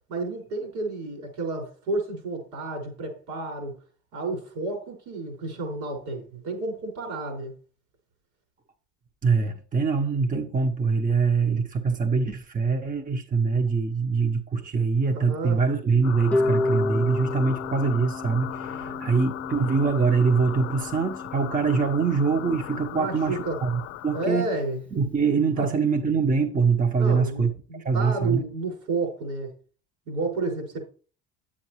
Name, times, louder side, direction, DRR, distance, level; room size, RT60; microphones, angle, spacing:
voice 1, 0.1-3.7 4.1-7.5 15.0-15.6 18.7-19.0 22.9-23.6 24.1-24.8 25.6-25.7 27.0-29.5 30.1-30.9, right 3 dB, 75° right, 5.7 m, -31 dB
voice 2, 9.2-24.5 24.9-27.5 27.8-28.4, right 5 dB, 25° right, 1.2 m, -24 dB
sound 1, 16.0-24.3, left 14 dB, 55° left, 0.6 m, -38 dB
Harp, 16.3-22.4, left 2 dB, 5° left, 0.5 m, -31 dB
9.8 x 8.7 x 3.2 m
supercardioid pair, 80°, 31 cm